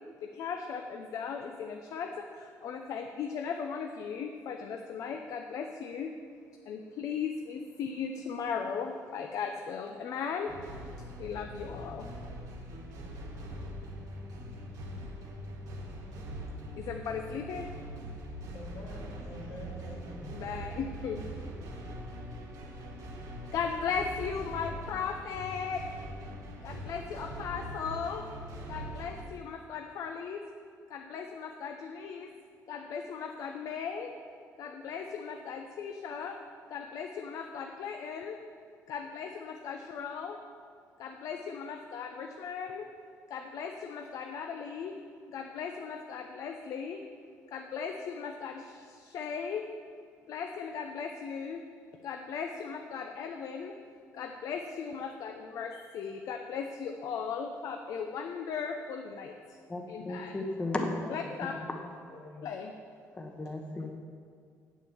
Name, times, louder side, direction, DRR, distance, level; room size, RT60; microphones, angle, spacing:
voice 1, 0.2-6.1 6.7-10.5 11.2-12.1 16.8-17.7 20.3-21.3 23.5-25.8 26.6-28.2 28.7-30.4 30.9-32.3 32.7-34.1 34.6-36.4 36.7-38.4 38.9-40.4 41.0-42.9 43.3-45.0 45.3-47.0 47.5-49.7 50.3-51.6 52.0-53.8 54.1-59.6 59.9-60.4 61.1-61.5 62.4-62.7, left 6 dB, 65° left, 4 dB, 0.7 m, -37 dB
sound 1, 10.5-29.2, equal, 80° right, 2.0 m, -42 dB
voice 2, 18.5-20.4 61.0-62.5, left 1 dB, 90° left, -4 dB, 2.8 m, -47 dB
voice 3, 59.7-60.9 61.4-61.6 63.1-63.9, left 2 dB, 20° left, 2 dB, 1.0 m, -35 dB
8.4 x 7.3 x 7.1 m, 2.2 s
cardioid pair, 115°, 6 cm